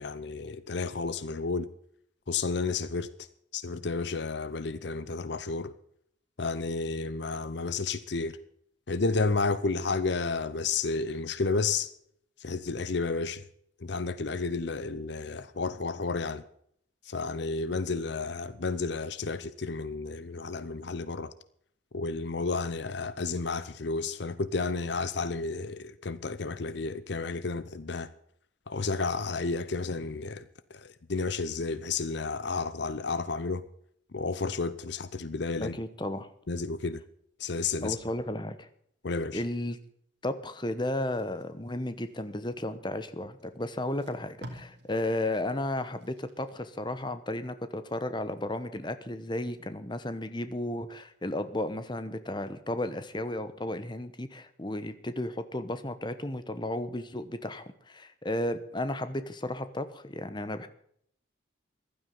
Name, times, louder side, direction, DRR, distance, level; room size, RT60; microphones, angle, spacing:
voice 1, 0.0-1.7 2.3-3.1 3.5-5.7 6.4-8.4 8.9-11.9 12.4-13.4 13.8-16.4 17.1-21.3 21.9-28.1 28.7-30.4 30.7-33.6 34.1-35.7 36.5-37.0 37.4-38.0 39.0-39.4, left 4 dB, 60° left, 0.7 m, -31 dB
voice 2, 35.6-36.3 37.8-38.7 39.3-39.8 40.2-60.7, left 1 dB, 25° left, 1.0 m, -34 dB
Packing tape duct tape, 41.0-42.7 43.4-43.5 43.8-46.8 47.2-47.4, equal, 60° right, 3.1 m, -51 dB
15.5 x 12.5 x 5.5 m
head